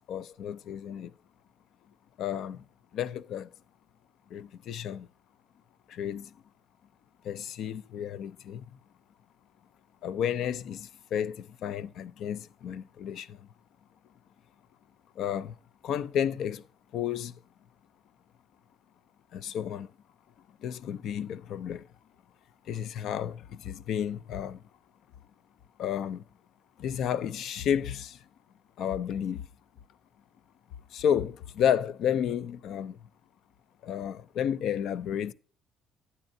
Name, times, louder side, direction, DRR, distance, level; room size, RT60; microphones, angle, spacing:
voice 1, 0.1-1.1 2.2-2.6 2.9-3.5 4.3-5.1 5.9-6.3 7.2-8.7 10.0-13.5 15.2-15.6 15.8-16.6 16.9-17.3 19.3-19.9 20.6-21.9 22.7-24.6 25.8-26.2 26.8-28.3 28.8-29.4 30.9-33.1 33.8-35.3, left 9 dB, 70° left, 0.4 m, -32 dB
9.8 x 9.6 x 2.6 m
cardioid pair, 135°, 0 cm